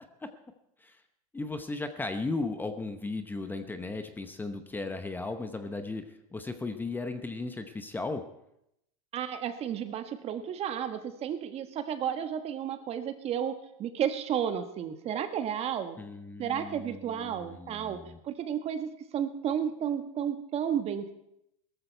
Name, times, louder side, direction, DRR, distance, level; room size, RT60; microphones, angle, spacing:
voice 1, 1.3-8.2 16.0-18.2, left 3 dB, 10° left, 8 dB, 0.9 m, -36 dB
voice 2, 9.1-16.0 16.4-21.1, right 9 dB, 35° right, 9 dB, 1.3 m, -32 dB
17.5 x 13.5 x 4.5 m, 0.80 s
supercardioid pair, 125°, 18 cm